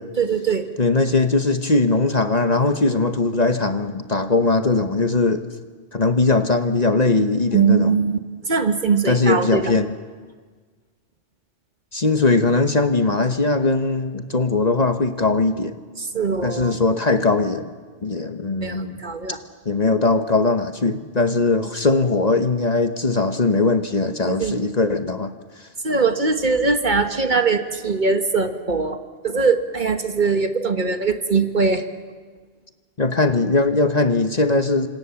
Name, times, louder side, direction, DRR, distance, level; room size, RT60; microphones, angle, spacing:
voice 1, 0.2-0.7 7.5-8.2 8.4-9.7 16.0-16.7 18.6-19.4 24.3-24.5 25.8-31.8, right 4 dB, 45° right, 7 dB, 1.5 m, -21 dB
voice 2, 0.8-5.4 5.9-7.9 9.1-10.0 11.9-15.8 16.4-17.7 18.0-19.0 19.6-25.3 33.0-34.9, left 3 dB, 40° left, 8 dB, 1.2 m, -20 dB
29.0 x 26.5 x 7.2 m, 1.5 s
omnidirectional pair, 1.1 m